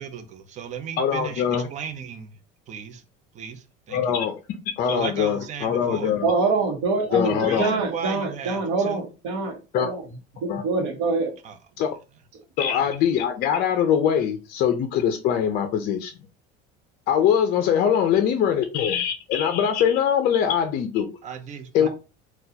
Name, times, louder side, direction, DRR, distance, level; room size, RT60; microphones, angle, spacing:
voice 1, 0.0-2.4 2.7-3.0 3.3-4.2 4.8-6.2 7.2-9.1 11.4-11.6 12.7-12.9 21.2-21.9, right 7 dB, 35° right, 0.6 m, -36 dB
voice 2, 1.0-1.7 3.9-4.4 4.8-6.3 7.1-7.7 9.7-9.9 10.5-10.6 11.8-11.9 12.6-16.1 17.1-21.2 21.7-21.9, left 8 dB, 50° left, 0.5 m, -22 dB
voice 3, 6.2-10.0 10.4-11.3, right 3 dB, 80° right, 1.0 m, -25 dB
3.9 x 2.3 x 2.7 m
cardioid pair, 135°, 20 cm